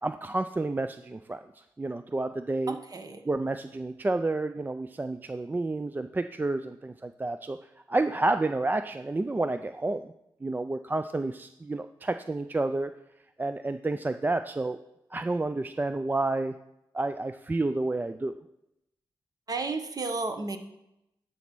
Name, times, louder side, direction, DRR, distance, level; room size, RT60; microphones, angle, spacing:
voice 1, 0.0-1.4 1.8-2.8 3.3-7.6 7.9-10.1 10.4-12.9 13.4-14.8 15.1-16.5 16.9-18.4, right 2 dB, 20° right, 9 dB, 0.4 m, -30 dB
voice 2, 2.7-3.2 19.5-20.6, right 3 dB, 45° right, 7 dB, 1.1 m, -32 dB
10.5 x 4.1 x 6.1 m, 0.86 s
cardioid pair, 65°, 9 cm